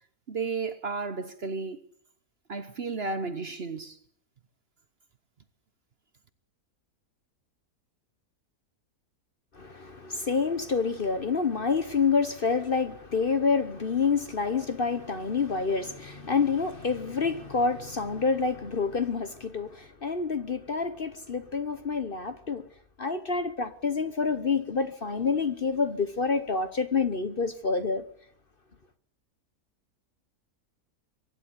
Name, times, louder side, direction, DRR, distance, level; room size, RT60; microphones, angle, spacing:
voice 1, 0.3-1.8 2.5-4.0, right 4 dB, 45° right, 1.1 m, -33 dB
voice 2, 9.5-22.7 23.0-28.0, left 5 dB, 40° left, 1.0 m, -28 dB
23.5 x 11.5 x 9.7 m
omnidirectional pair, 1.7 m